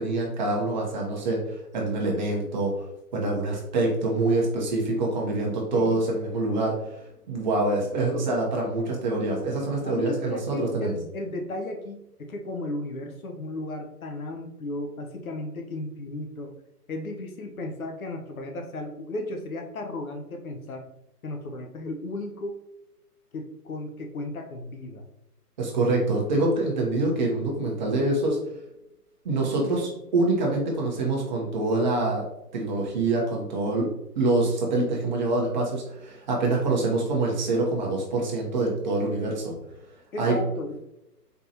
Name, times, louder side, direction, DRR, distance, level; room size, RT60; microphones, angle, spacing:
voice 1, 0.0-2.7 3.1-7.0 7.3-10.9 25.6-28.4 29.2-32.3 32.5-33.9 34.1-39.5 40.2-40.4, right 2 dB, 30° right, -1 dB, 0.9 m, -25 dB
voice 2, 5.7-6.0 9.8-16.5 16.9-20.9 21.2-22.6 23.3-25.1 40.1-40.7, left 1 dB, 60° left, 4 dB, 0.8 m, -35 dB
4.3 x 3.5 x 2.7 m, 0.87 s
figure-of-eight pair, 135°, 48 cm